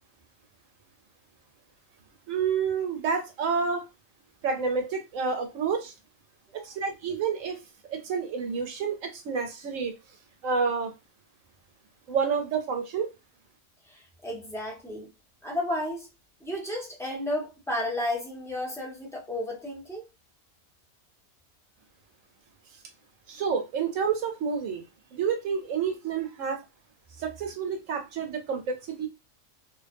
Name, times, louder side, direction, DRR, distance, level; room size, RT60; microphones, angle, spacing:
voice 1, 2.3-3.9 4.4-5.9 6.6-7.6 7.9-9.9 10.4-10.9 12.1-13.1 23.3-24.8 25.1-26.6 27.2-29.1, right 6 dB, 70° right, 0.9 m, -29 dB
voice 2, 14.2-15.1 15.4-16.1 16.4-20.0, left 1 dB, 5° left, 0.4 m, -32 dB
2.4 x 2.2 x 2.4 m
omnidirectional pair, 1.4 m